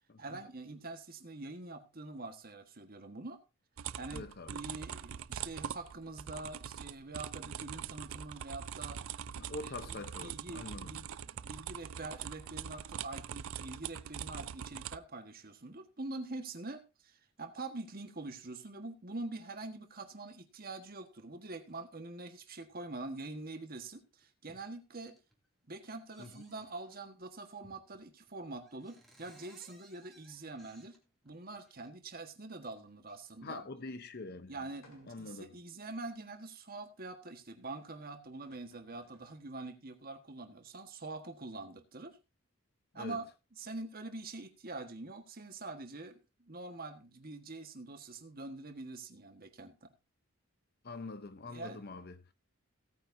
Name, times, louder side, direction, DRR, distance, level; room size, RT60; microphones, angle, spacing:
voice 1, 0.2-3.4 4.0-4.3 4.5-9.1 9.6-25.2 25.7-31.0 31.2-33.6 34.5-42.2 42.9-43.2 43.5-49.9 51.5-51.8, right 2 dB, 40° right, 1.5 m, -45 dB
sound 1, 3.8-15.0, right 8 dB, 65° right, 0.4 m, -43 dB
voice 2, 4.1-4.5 9.4-11.0 26.2-26.4 33.4-34.5 35.1-35.6 42.9-43.2 50.8-52.2, left 3 dB, 45° left, 0.8 m, -44 dB
sound 2, 21.7-21.8 22.7-22.9 23.5-23.6 24.0-24.7 25.0-25.5 25.8-27.0 27.6-28.0 28.3-28.4 28.6-31.9 32.6-33.2, right 1 dB, ahead, 2.6 m, -63 dB
sound 3, 34.8-35.4 36.1-36.2 38.0-38.1 38.3-39.5, left 1 dB, 65° left, 3.0 m, -64 dB
17.0 x 9.1 x 2.7 m
head